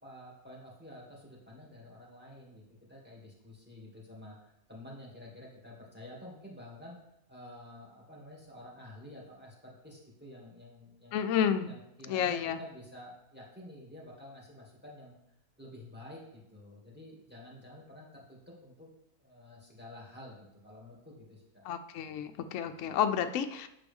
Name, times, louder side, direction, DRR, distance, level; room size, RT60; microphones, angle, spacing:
voice 1, 0.0-7.0 7.3-11.2 11.6-15.1 15.6-18.9 19.2-21.4, left 1 dB, 5° right, -4 dB, 2.1 m, -50 dB
voice 2, 11.1-11.7 12.1-12.6 21.6-23.7, left 8 dB, 70° left, 8 dB, 0.8 m, -30 dB
9.2 x 6.1 x 3.5 m, 0.82 s
omnidirectional pair, 1.7 m